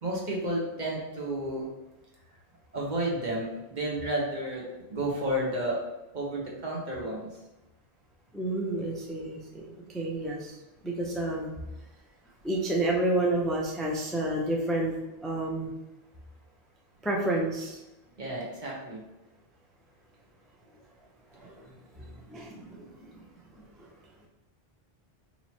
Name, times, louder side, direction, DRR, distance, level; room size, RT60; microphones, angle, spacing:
voice 1, 0.0-1.7 2.7-4.6 4.9-5.8 6.1-7.3 18.2-19.0, right 1 dB, 50° right, -2 dB, 1.0 m, -31 dB
voice 2, 8.3-10.5 10.8-11.5 12.4-14.9 15.2-15.7 17.0-17.8 21.4-21.6 22.0-22.8, right 1 dB, ahead, -2 dB, 0.3 m, -30 dB
3.0 x 2.7 x 4.3 m, 1.0 s
omnidirectional pair, 1.0 m